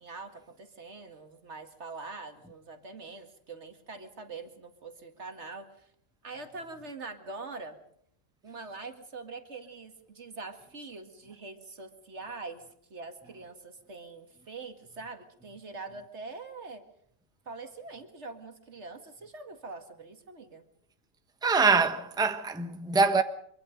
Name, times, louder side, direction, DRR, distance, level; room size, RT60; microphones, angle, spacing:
voice 1, 0.0-5.9 6.2-7.8 8.4-12.6 12.9-16.8 17.5-20.6, right 3 dB, 60° right, 2.3 m, -44 dB
voice 2, 21.4-23.2, right 4 dB, 5° right, 1.1 m, -24 dB
25.0 x 24.0 x 5.3 m
omnidirectional pair, 1.3 m